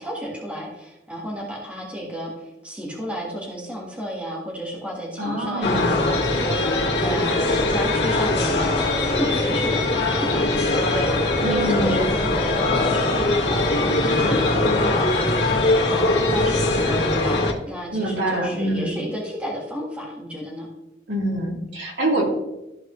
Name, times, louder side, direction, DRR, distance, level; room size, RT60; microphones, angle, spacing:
voice 1, 0.0-20.7, equal, 5° right, -3 dB, 1.8 m, -32 dB
voice 2, 5.2-6.1 11.4-12.1 17.9-19.0 21.1-22.2, right 1 dB, 90° right, -3 dB, 2.8 m, -25 dB
sound 1, 5.6-17.5, left 2 dB, 75° left, 1.9 m, -21 dB
14.0 x 4.7 x 3.3 m, 0.96 s
head